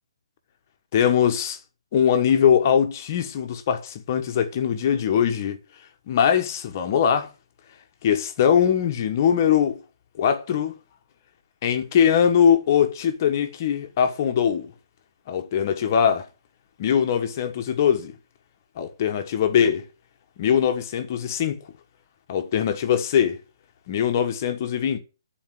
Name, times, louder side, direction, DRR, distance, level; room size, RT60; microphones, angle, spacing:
voice 1, 0.9-1.6 1.9-5.6 6.1-7.3 8.0-9.8 10.2-10.7 11.6-14.7 15.3-16.3 16.8-18.1 18.8-19.8 20.4-21.6 22.3-23.4 23.9-25.0, left 8 dB, 35° left, 1.3 m, -21 dB
9.9 x 4.5 x 7.7 m
hypercardioid pair, 165°, 3 cm